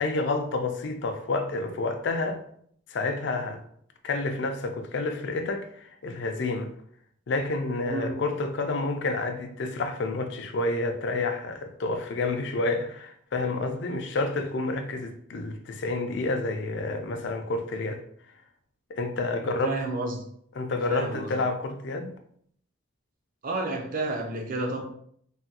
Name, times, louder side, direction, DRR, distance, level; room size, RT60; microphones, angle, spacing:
voice 1, 0.0-2.4 2.9-3.6 4.0-6.7 7.3-18.0 18.9-19.8 20.6-22.2, left 3 dB, 55° left, 0.4 m, -29 dB
voice 2, 7.9-8.2 19.6-20.2 20.9-21.4 23.4-24.8, right 2 dB, 40° right, 0.5 m, -30 dB
3.4 x 2.2 x 2.7 m
head